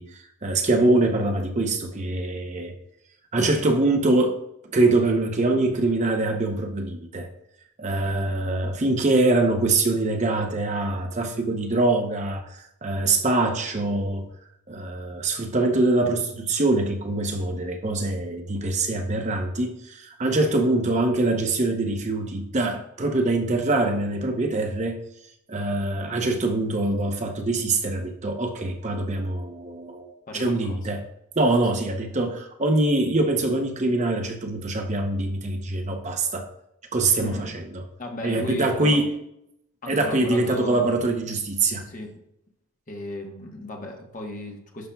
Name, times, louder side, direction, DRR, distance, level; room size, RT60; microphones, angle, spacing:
voice 1, 0.0-2.7 3.3-4.4 4.7-7.3 7.8-14.3 14.7-25.0 25.5-31.0 31.4-36.5 36.9-37.8 38.2-39.1 39.9-41.9, right 2 dB, 30° right, 4 dB, 0.6 m, -24 dB
voice 2, 30.3-30.8 37.2-37.5 38.0-39.1 39.8-41.0 41.8-42.1 42.9-44.9, left 2 dB, 35° left, 2 dB, 1.0 m, -35 dB
11.0 x 5.7 x 2.3 m, 0.80 s
head